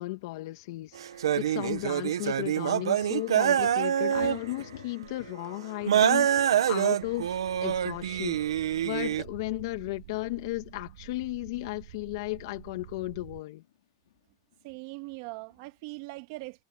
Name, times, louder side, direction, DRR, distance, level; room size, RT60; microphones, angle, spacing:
voice 1, 0.0-8.4 8.8-13.6, left 21 dB, 60° left, 2.2 m, -35 dB
sound 1, 0.9-1.0 1.6-1.9 3.0-9.2 9.5-9.6 10.1-10.3 10.5-10.8 11.1-11.3 12.2-14.8 15.0-15.7, left 13 dB, 75° left, 5.1 m, -52 dB
sound 2, 0.9-4.6 5.0-5.1 5.9-9.2, right 10 dB, 90° right, 1.4 m, -26 dB
sound 3, 7.0-13.4, right 13 dB, 70° right, 3.2 m, -48 dB
voice 2, 14.6-16.6, right 24 dB, 50° right, 2.6 m, -41 dB
supercardioid pair, 140°, 2 cm